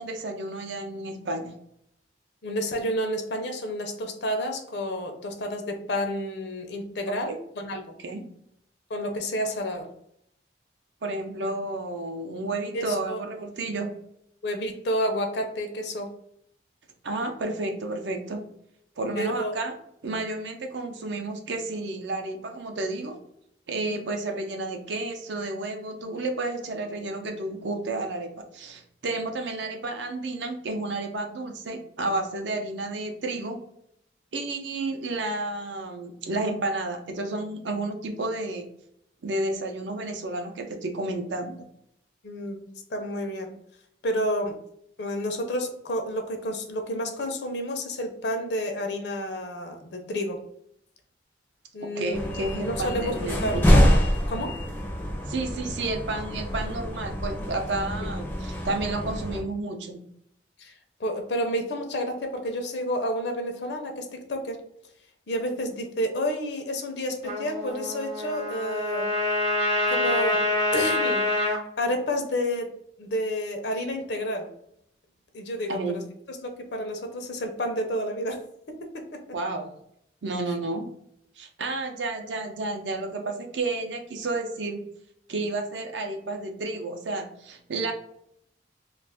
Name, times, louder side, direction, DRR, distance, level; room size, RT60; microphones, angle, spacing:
voice 1, 0.0-1.6 7.3-7.4 8.0-8.2 11.0-13.9 17.0-18.5 19.0-19.7 20.0-23.2 23.7-33.6 34.3-38.7 39.2-41.7 51.8-53.6 55.3-60.0 75.7-76.0 79.3-79.7 80.2-80.9 81.4-84.8 85.3-87.9, right 2 dB, 70° right, 4 dB, 0.6 m, -31 dB
voice 2, 2.4-7.9 8.9-9.9 12.7-13.2 14.4-16.1 19.2-19.5 23.9-24.0 42.2-43.5 44.0-44.6 45.0-50.4 51.7-52.3 52.6-53.2 53.4-53.5 54.3-54.6 60.6-60.7 61.0-64.6 65.3-69.1 69.9-70.4 70.7-71.2 71.8-72.7 73.0-74.5 75.3-76.0 76.3-79.2, equal, 65° left, 4 dB, 0.6 m, -30 dB
sound 1, 52.1-59.4, equal, 10° left, 0.4 m, -25 dB
Trumpet, 67.2-71.6, left 2 dB, 40° right, 0.8 m, -26 dB
2.5 x 2.4 x 3.4 m, 0.72 s
head